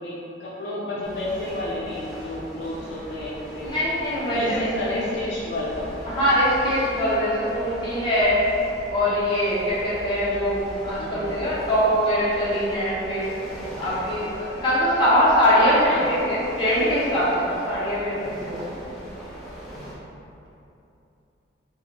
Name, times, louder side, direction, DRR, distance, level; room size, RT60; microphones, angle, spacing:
voice 1, 0.0-3.7 4.3-6.3 11.0-11.4 13.9-14.0 15.6-16.1, left 1 dB, 60° left, -7 dB, 0.5 m, -31 dB
sound 1, 1.0-19.9, equal, ahead, 0.7 m, -39 dB
voice 2, 3.6-5.0 6.1-8.4 8.9-13.3 13.8-18.9, equal, 25° left, -10 dB, 1.0 m, -22 dB
3.6 x 2.5 x 4.1 m, 2.8 s
head